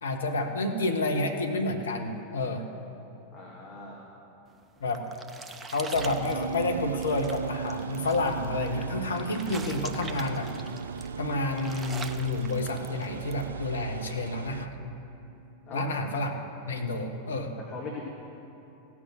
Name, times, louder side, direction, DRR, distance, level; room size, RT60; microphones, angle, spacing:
voice 1, 0.0-2.7 4.8-5.1 5.7-10.5 11.2-14.9 15.7-16.4 16.7-17.5, left 2 dB, 70° left, 4 dB, 1.1 m, -30 dB
voice 2, 3.3-4.0 15.7-15.9 17.7-18.0, left 4 dB, 30° left, -5 dB, 2.1 m, -40 dB
sound 1, 4.5-13.4, right 4 dB, 15° right, 0.7 m, -44 dB
sound 2, 5.9-14.7, right 6 dB, 70° right, 0.3 m, -38 dB
sound 3, 6.3-15.8, right 7 dB, 85° right, 0.7 m, -42 dB
16.0 x 6.1 x 7.8 m, 2.9 s
figure-of-eight pair, 90°, 0 cm